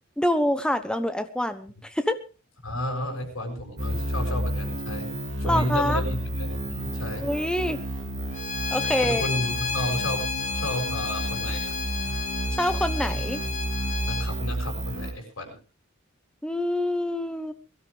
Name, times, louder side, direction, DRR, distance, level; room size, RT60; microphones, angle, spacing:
voice 1, 0.2-2.2 5.4-6.0 7.2-7.8 8.7-9.2 12.6-13.4 16.4-17.5, left 1 dB, 5° left, 10 dB, 1.0 m, -26 dB
voice 2, 2.6-7.3 9.0-10.3 10.5-11.8 14.0-15.6, equal, 85° left, 2 dB, 6.9 m, -32 dB
sound 1, 3.8-15.1, right 1 dB, 65° right, 3.1 m, -31 dB
Bowed string instrument, 8.3-14.3, left 5 dB, 35° left, 2.2 m, -31 dB
22.0 x 13.0 x 3.5 m, 0.34 s
head